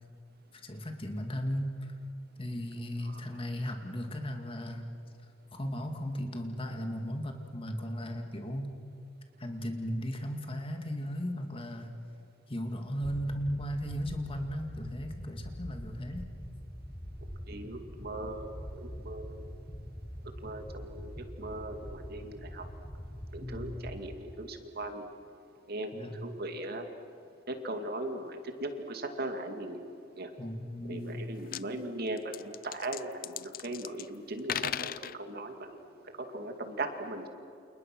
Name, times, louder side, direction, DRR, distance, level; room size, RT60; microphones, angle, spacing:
voice 1, 0.5-1.9 2.4-4.9 5.5-8.7 9.4-11.9 12.5-16.3 23.4-23.8 25.9-26.2 30.4-31.2, equal, 30° left, 4 dB, 2.3 m, -36 dB
carmelo pampillonio seismic reel, 13.0-24.2, equal, 10° left, 1.7 m, -44 dB
voice 2, 17.5-19.4 20.4-22.6 23.3-25.0 25.7-26.8 27.5-29.8 30.2-30.3 30.8-35.8 36.3-37.3, right 2 dB, 55° right, 5 dB, 2.4 m, -39 dB
sound 1, 31.1-31.2 31.4-31.6 32.2-34.1 34.4-35.2, left 10 dB, 50° left, 0.5 m, -36 dB
29.5 x 28.5 x 6.2 m, 2.6 s
head